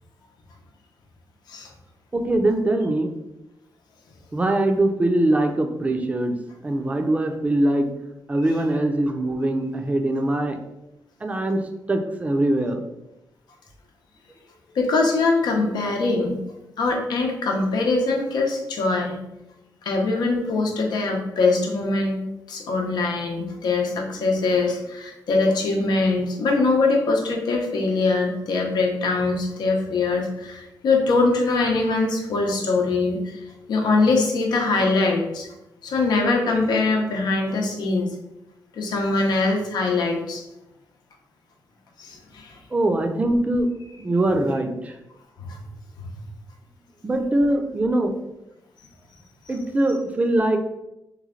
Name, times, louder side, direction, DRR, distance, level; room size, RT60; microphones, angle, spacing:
voice 1, 2.1-3.1 4.3-6.4 6.6-7.9 8.3-10.6 11.2-11.6 11.9-12.8 42.7-43.7 44.0-44.9 47.0-48.1 49.5-50.6, right 1 dB, 20° right, 5 dB, 0.4 m, -22 dB
voice 2, 14.7-16.4 16.8-19.2 19.8-22.2 22.5-33.4 33.7-35.5 35.8-38.1 38.7-40.4 42.0-42.6 45.4-45.6, left 3 dB, 85° left, 1 dB, 0.8 m, -22 dB
3.4 x 3.1 x 3.7 m, 0.90 s
wide cardioid pair, 135°, 7 cm